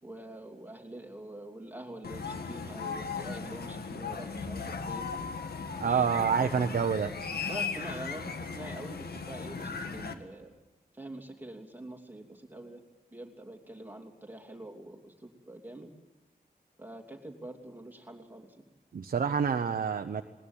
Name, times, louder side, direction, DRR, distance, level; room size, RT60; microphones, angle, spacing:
voice 1, 0.0-5.3 5.8-6.6 7.5-10.5 10.9-12.8 13.1-15.9 16.8-18.6, right 1 dB, 10° right, 3 dB, 3.0 m, -45 dB
sound 1, 2.0-10.1, left 5 dB, 80° left, 1.9 m, -37 dB
voice 2, 5.8-7.1 18.9-20.2, right 6 dB, 65° right, 6 dB, 0.9 m, -27 dB
20.0 x 20.0 x 9.0 m, 1.1 s
wide cardioid pair, 145°, 16 cm